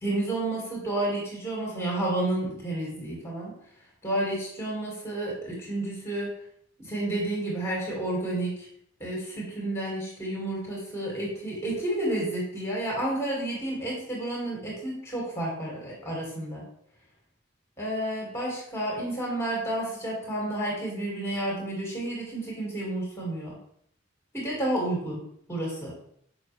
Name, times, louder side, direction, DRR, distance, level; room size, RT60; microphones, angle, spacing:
voice 1, 0.0-3.6 4.0-6.3 6.8-8.7 9.0-16.6 17.8-23.6 24.3-25.9, right 1 dB, 15° left, -4 dB, 1.9 m, -31 dB
6.6 x 5.0 x 3.2 m, 0.68 s
head